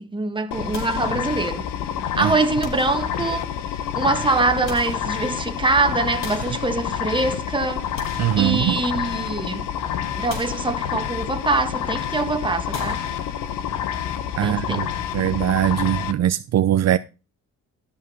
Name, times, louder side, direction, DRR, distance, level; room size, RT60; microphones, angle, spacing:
voice 1, 0.0-1.7 2.2-7.9 8.4-9.7 10.2-13.0 14.4-14.8, right 3 dB, 15° right, 1.7 m, -24 dB
sound 1, 0.5-16.1, left 9 dB, 85° left, 1.2 m, -28 dB
sound 2, 0.7-1.8 2.6-3.7 4.3-5.7 6.2-7.3 7.7-9.2 9.6-9.7 10.3-11.4 12.7-13.8, left 2 dB, 45° left, 4.5 m, -40 dB
voice 2, 8.2-8.8 14.4-14.9 15.1-17.0, right 11 dB, 60° right, 0.6 m, -21 dB
12.5 x 5.4 x 5.7 m
cardioid pair, 90°, 30 cm